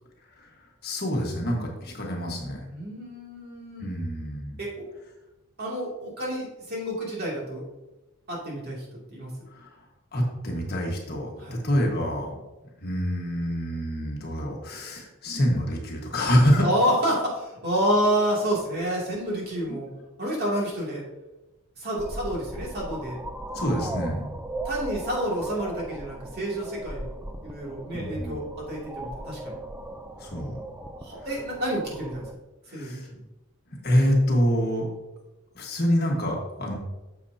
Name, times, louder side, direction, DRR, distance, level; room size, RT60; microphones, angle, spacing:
voice 1, 0.8-2.6 3.8-4.6 9.5-9.7 10.1-12.4 12.8-16.7 19.7-19.8 23.5-24.2 27.9-28.5 30.2-30.6 32.7-33.1 33.8-34.9 35.5-36.8, equal, 45° left, -1 dB, 1.5 m, -26 dB
voice 2, 2.7-3.9 4.6-4.9 5.6-7.6 8.3-8.8 9.1-9.3 11.4-11.6 16.6-19.9 20.2-21.0 21.8-23.2 24.6-29.6 31.0-32.2 32.7-33.0, equal, 45° right, -4 dB, 2.5 m, -29 dB
sound 1, 22.0-32.4, right 1 dB, 10° right, 0.4 m, -37 dB
9.1 x 6.8 x 2.8 m, 1.0 s
head